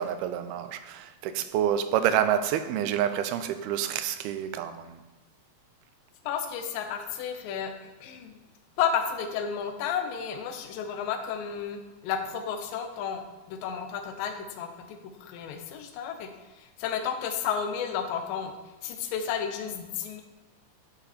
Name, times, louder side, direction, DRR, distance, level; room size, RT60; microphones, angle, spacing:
voice 1, 0.0-5.0, right 10 dB, 90° right, 10 dB, 2.6 m, -28 dB
voice 2, 6.2-8.4 8.8-18.5 18.8-20.2, left 7 dB, 75° left, 6 dB, 2.5 m, -32 dB
12.0 x 7.0 x 4.3 m, 1.1 s
omnidirectional pair, 4.4 m